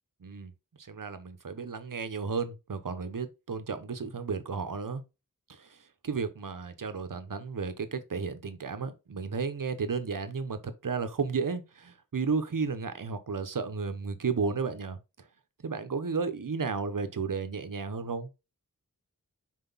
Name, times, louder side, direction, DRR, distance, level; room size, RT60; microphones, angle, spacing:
voice 1, 0.2-0.5 0.8-5.0 5.5-15.0 15.6-18.3, right 5 dB, 70° right, 1.1 m, -33 dB
6.1 x 4.6 x 4.0 m
wide cardioid pair, 75°, 34 cm